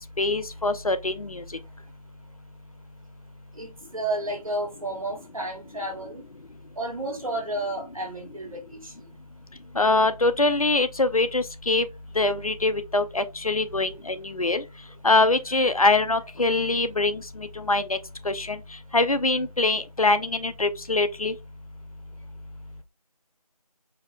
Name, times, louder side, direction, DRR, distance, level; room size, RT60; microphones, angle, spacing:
voice 1, 0.2-1.4 9.7-11.9 12.2-14.6 15.0-18.0 18.2-18.6 18.9-21.3, left 2 dB, 65° left, 0.6 m, -23 dB
voice 2, 3.6-6.2 6.8-8.9, right 1 dB, 60° right, 1.5 m, -31 dB
4.7 x 2.1 x 3.5 m
figure-of-eight pair, 170°, 20 cm